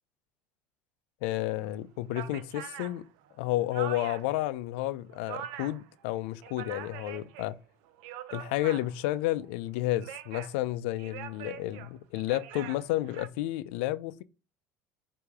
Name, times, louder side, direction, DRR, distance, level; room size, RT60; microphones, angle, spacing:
voice 1, 1.2-3.0 3.4-7.6 8.3-14.2, left 15 dB, 80° left, 0.5 m, -31 dB
sound 1, 1.6-1.7 2.1-4.4 4.8-5.9 6.2-7.5 7.9-9.1 9.8-10.6 11.0-13.3, right 11 dB, 75° right, 0.7 m, -43 dB
7.0 x 2.8 x 4.8 m
supercardioid pair, 95°, 6 cm